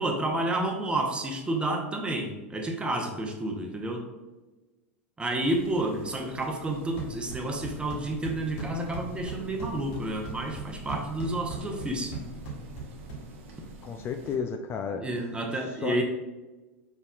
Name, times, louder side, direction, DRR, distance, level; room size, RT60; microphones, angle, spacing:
voice 1, 0.0-4.1 5.2-12.1 15.0-16.0, right 1 dB, 15° right, 2 dB, 0.9 m, -30 dB
sound 1, 5.4-14.4, right 3 dB, 70° right, 0.8 m, -48 dB
sound 2, 6.8-13.7, right 2 dB, 70° left, 1.5 m, -40 dB
voice 2, 13.8-15.1 15.7-16.0, left 6 dB, 35° left, 6 dB, 0.4 m, -32 dB
5.3 x 4.1 x 2.4 m, 1.1 s
hypercardioid pair, 100°, 7 cm